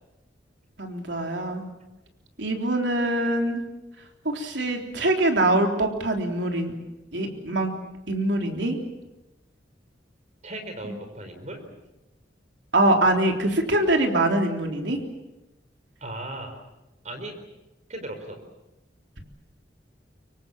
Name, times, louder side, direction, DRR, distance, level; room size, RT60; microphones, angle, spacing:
voice 1, 0.8-1.7 2.4-3.6 4.3-6.7 7.1-7.7 8.1-8.8 12.7-15.0, right 1 dB, 80° right, 3 dB, 3.6 m, -23 dB
voice 2, 10.4-11.6 16.0-16.6 17.0-17.4 17.9-18.4, right 1 dB, 40° right, 6 dB, 4.6 m, -36 dB
25.0 x 24.0 x 7.5 m, 0.99 s
head